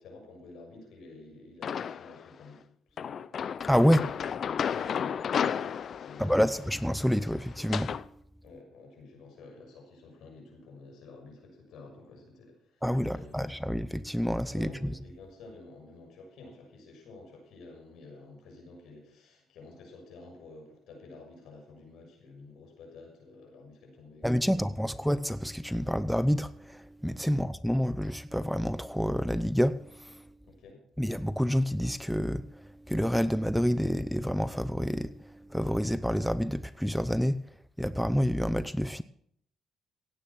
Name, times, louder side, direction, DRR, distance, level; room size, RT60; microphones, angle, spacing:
voice 1, 0.0-2.6 2.9-3.3 4.7-6.6 8.4-12.8 13.1-13.6 14.5-25.0 27.3-27.5 30.4-30.8, left 3 dB, 80° left, 6.6 m, -50 dB
sound 1, 1.6-2.2 3.0-8.0, left 7 dB, 55° left, 0.6 m, -33 dB
voice 2, 3.7-4.2 6.2-8.0 12.8-14.9 24.2-30.2 31.0-37.4 37.8-39.0, equal, ahead, 0.7 m, -28 dB
17.0 x 9.0 x 6.1 m
cardioid pair, 90°, 0 cm